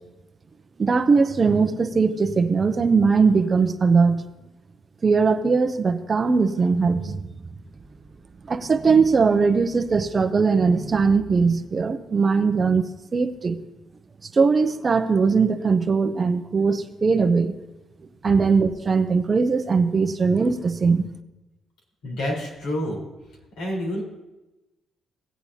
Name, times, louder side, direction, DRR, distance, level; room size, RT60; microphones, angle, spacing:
voice 1, 0.8-4.2 5.0-7.2 8.5-12.8 13.1-13.6 14.3-17.6 18.2-21.1, right 4 dB, 35° right, 9 dB, 0.7 m, -20 dB
voice 2, 22.0-23.0 23.6-24.0, equal, 85° left, -3 dB, 4.1 m, -28 dB
18.0 x 8.7 x 2.8 m, 1.0 s
cardioid pair, 90°, 0 cm